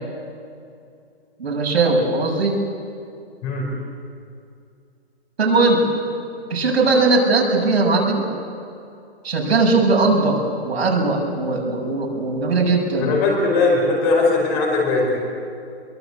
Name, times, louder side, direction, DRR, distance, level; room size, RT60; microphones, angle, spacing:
voice 1, 1.4-2.6 5.4-5.8 6.5-8.3 9.2-10.4 10.7-13.1, right 3 dB, 70° right, 0 dB, 6.9 m, -19 dB
voice 2, 13.0-15.2, left 3 dB, 20° left, -1 dB, 4.9 m, -19 dB
23.5 x 23.0 x 8.4 m, 2.5 s
hypercardioid pair, 165°, 32 cm